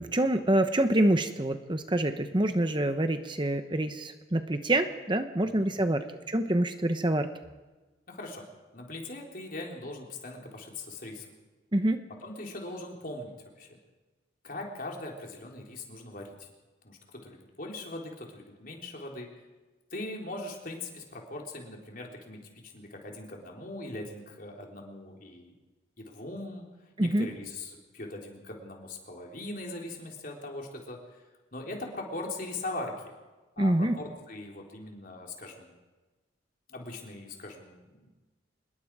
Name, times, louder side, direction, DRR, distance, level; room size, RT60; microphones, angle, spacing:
voice 1, 0.0-7.3 11.7-12.0 27.0-27.3 33.6-34.0, right 1 dB, 25° right, 8 dB, 0.9 m, -26 dB
voice 2, 5.4-6.0 8.1-8.5 8.7-11.3 12.2-13.8 14.4-16.5 16.8-19.3 19.9-25.5 26.0-26.7 27.0-31.0 31.5-32.9 33.6-35.8 36.7-38.1, left 2 dB, 45° left, 0 dB, 3.8 m, -40 dB
26.0 x 21.0 x 4.9 m, 1.2 s
head